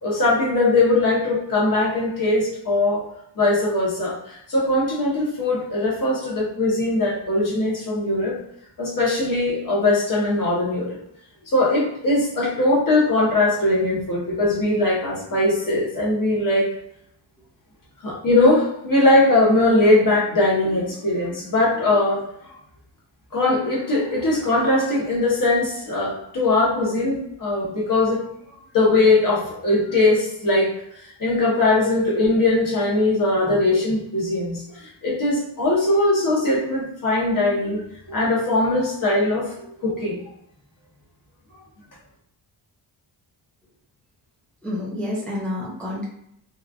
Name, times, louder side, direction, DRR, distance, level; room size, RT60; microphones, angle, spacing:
voice 1, 0.0-3.0 3.4-8.3 8.8-11.0 11.5-16.7 18.0-22.2 23.3-28.2 28.7-30.7 31.0-37.8 38.1-39.5 39.8-40.2 41.5-41.6, left 2 dB, 45° left, -4 dB, 1.0 m, -20 dB
voice 2, 44.6-46.0, left 1 dB, 5° left, -5 dB, 0.5 m, -29 dB
3.1 x 2.4 x 2.3 m, 0.74 s
wide cardioid pair, 175°, 47 cm